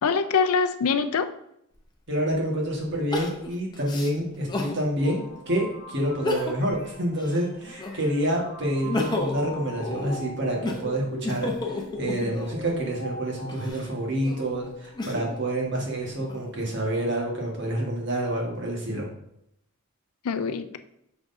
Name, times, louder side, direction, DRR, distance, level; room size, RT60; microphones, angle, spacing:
voice 1, 0.0-1.3 20.2-20.8, left 5 dB, 75° left, 11 dB, 0.4 m, -24 dB
Crying sobbing, 1.8-1.9 3.1-4.8 5.3-5.4 6.1-6.8 7.2-8.2 8.6-12.7 13.4-15.4 16.0-16.8, left 2 dB, 20° left, 0.7 m, -32 dB
voice 2, 2.1-19.1, right 1 dB, 50° right, -1 dB, 1.5 m, -28 dB
sound 1, 5.0-13.7, equal, 45° left, 1.2 m, -42 dB
6.1 x 6.0 x 2.7 m, 0.77 s
head